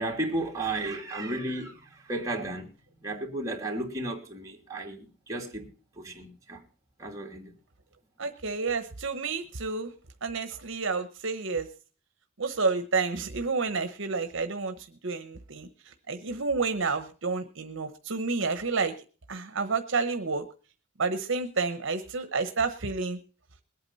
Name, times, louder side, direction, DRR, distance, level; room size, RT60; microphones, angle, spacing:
voice 1, 0.0-2.7 3.0-5.7 6.0-6.6 7.0-7.5, right 2 dB, 15° right, 3.0 m, -33 dB
voice 2, 8.2-9.9 10.2-11.7 12.4-14.7 15.0-18.9 19.3-20.4 21.0-23.2, right 4 dB, 65° right, 1.0 m, -30 dB
21.5 x 8.8 x 4.1 m
head